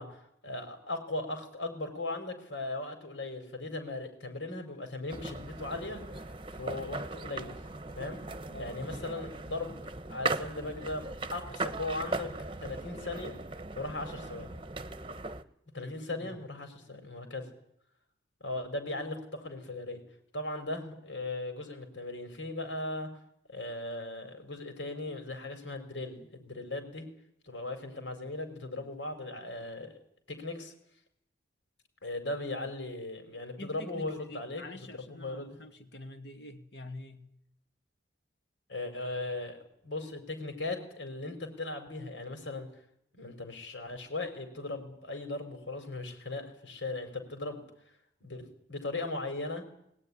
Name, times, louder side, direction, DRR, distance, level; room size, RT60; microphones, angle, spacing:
voice 1, 0.0-6.0 6.5-7.5 8.0-8.2 8.6-9.8 10.1-11.0 11.3-12.3 12.6-13.4 13.7-14.5 15.7-17.5 18.4-20.0 20.3-23.1 23.5-27.1 27.5-29.9 30.3-30.7 32.0-34.6 34.9-35.6 38.7-42.7 43.1-47.7 48.2-48.4 48.7-49.6, left 2 dB, 85° left, 5.0 m, -38 dB
sound 1, 5.1-15.4, right 3 dB, 30° right, 0.9 m, -38 dB
voice 2, 8.5-9.1 15.8-16.3 33.6-37.3, left 1 dB, 65° left, 2.4 m, -47 dB
21.5 x 18.0 x 10.0 m
head